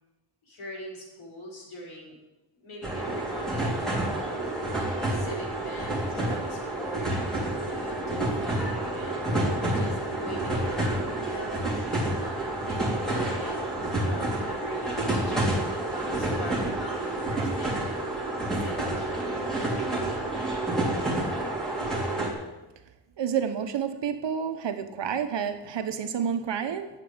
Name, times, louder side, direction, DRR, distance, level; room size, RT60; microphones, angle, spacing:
voice 1, 0.4-2.2 2.6-4.5 5.1-9.2 9.7-11.6 12.1-13.6 14.0-18.2 18.5-19.2, equal, 75° left, -3 dB, 4.9 m, -42 dB
sound 1, 2.8-22.3, right 1 dB, ahead, 3.2 m, -29 dB
voice 2, 23.2-26.9, right 7 dB, 60° right, 8 dB, 1.3 m, -29 dB
11.5 x 8.0 x 8.8 m, 1.0 s
wide cardioid pair, 170°, 49 cm